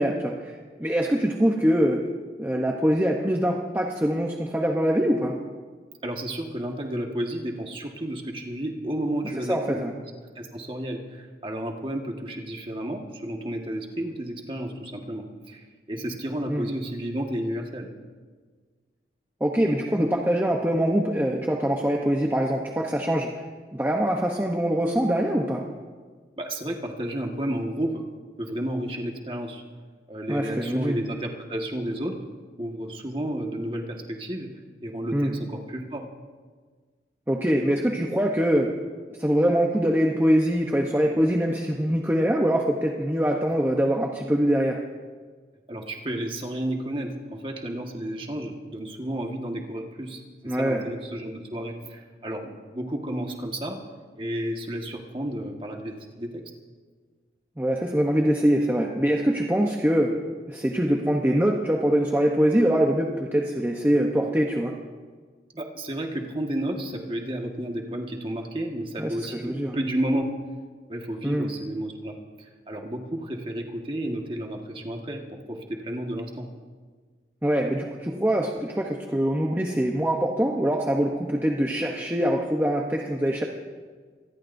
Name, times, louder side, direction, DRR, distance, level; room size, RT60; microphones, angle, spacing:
voice 1, 0.0-2.0 2.4-5.3 9.5-9.9 16.5-16.6 19.4-23.4 23.7-25.6 30.3-31.0 35.1-35.3 37.3-38.7 39.2-44.8 50.5-50.8 57.6-60.1 60.5-64.7 69.0-69.8 71.2-71.5 77.4-83.4, equal, 10° right, 0 dB, 0.9 m, -23 dB
voice 2, 6.0-9.8 10.3-17.9 26.4-28.0 28.4-29.6 30.1-32.1 32.6-34.5 34.8-36.0 45.7-53.8 54.2-56.4 65.5-70.3 70.9-75.2 75.5-76.5, right 1 dB, 30° right, 1 dB, 1.6 m, -32 dB
26.0 x 19.5 x 2.7 m, 1.5 s
head